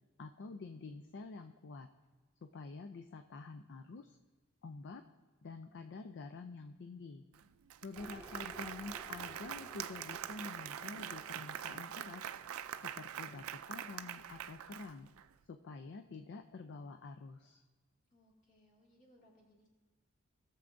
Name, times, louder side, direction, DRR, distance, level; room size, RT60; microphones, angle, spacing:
voice 1, 0.2-1.9 2.4-4.2 4.6-5.0 5.4-7.2 7.8-12.2 12.8-15.1 15.5-17.6, left 3 dB, 55° left, 7 dB, 0.4 m, -48 dB
Applause, 7.3-7.4 7.7-15.2, right 10 dB, 70° right, 0.4 m, -44 dB
sound 1, 8.0-13.6, right 1 dB, 5° right, 1.8 m, -56 dB
voice 2, 18.1-19.7, equal, 40° left, -3 dB, 2.3 m, -67 dB
17.5 x 6.9 x 2.6 m, 1.3 s
head